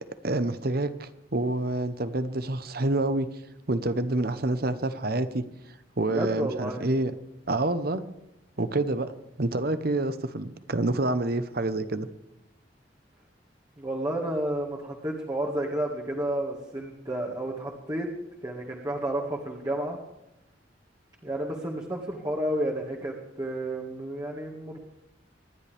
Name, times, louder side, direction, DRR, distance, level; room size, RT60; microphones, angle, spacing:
voice 1, 0.2-3.3 3.7-5.4 6.0-7.1 7.5-8.0 8.6-9.1 9.4-12.1, right 2 dB, 55° right, 12 dB, 1.0 m, -27 dB
voice 2, 6.1-6.8 13.8-18.1 18.4-20.0 21.2-24.8, right 1 dB, 20° right, -2 dB, 1.9 m, -31 dB
26.5 x 11.0 x 3.5 m, 0.90 s
head